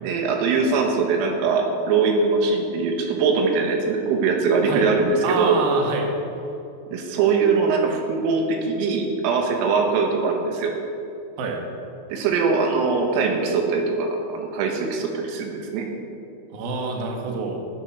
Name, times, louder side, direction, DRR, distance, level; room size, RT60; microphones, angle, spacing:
voice 1, 0.0-5.6 6.9-10.7 12.1-15.9, right 4 dB, 90° right, 2 dB, 4.0 m, -22 dB
voice 2, 5.2-6.1 11.4-11.6 16.5-17.6, right 4 dB, 60° right, 0 dB, 3.0 m, -26 dB
16.0 x 7.8 x 6.4 m, 2.8 s
omnidirectional pair, 5.8 m